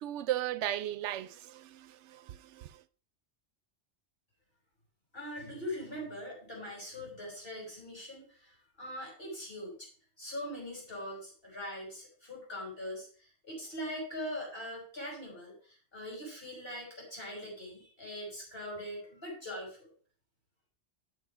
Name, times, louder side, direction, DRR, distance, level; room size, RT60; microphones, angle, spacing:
voice 1, 0.0-2.8, right 12 dB, 85° right, 0.9 m, -36 dB
voice 2, 5.1-9.9 10.2-19.9, equal, 55° left, 5.9 m, -42 dB
9.2 x 6.6 x 4.9 m
omnidirectional pair, 1.2 m